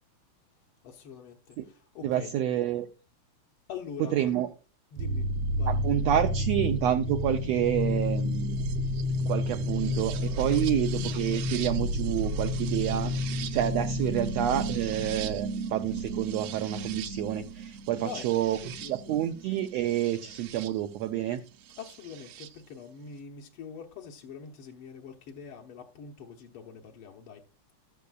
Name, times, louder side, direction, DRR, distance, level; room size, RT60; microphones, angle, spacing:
voice 1, 0.8-2.3 3.7-4.5 4.9-5.3 5.5-5.8 10.5-10.6 18.0-18.3 18.6-19.2 21.8-27.4, left 6 dB, 75° left, 1.3 m, -44 dB
voice 2, 2.0-2.9 4.1-4.5 5.7-8.6 9.3-21.4, right 11 dB, 90° right, 1.4 m, -29 dB
sound 1, 5.0-20.7 21.9-22.5, equal, 75° right, 1.6 m, -31 dB
13.5 x 12.0 x 2.4 m
omnidirectional pair, 3.7 m